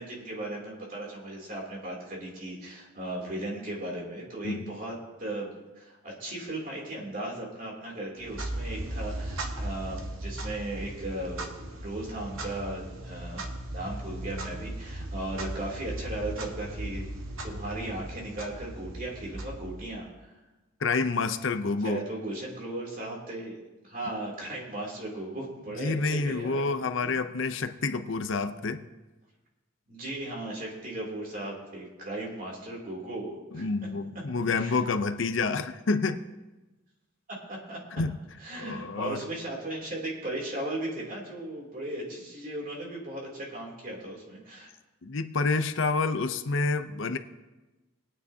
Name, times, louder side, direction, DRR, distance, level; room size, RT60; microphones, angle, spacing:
voice 1, 0.0-5.5 5.8-13.4 13.7-17.0 17.4-20.3 21.8-23.6 23.8-27.1 29.9-33.7 34.5-34.8 37.5-37.8 38.4-44.7, right 1 dB, 40° right, -2 dB, 2.9 m, -37 dB
Clock, 8.2-20.1, right 1 dB, 75° right, 1.4 m, -37 dB
voice 2, 20.8-22.0 25.8-28.8 33.5-36.2 37.9-38.1 38.6-39.2 45.0-47.2, left 4 dB, 65° left, 10 dB, 0.6 m, -28 dB
21.0 x 9.3 x 2.8 m, 1.1 s
head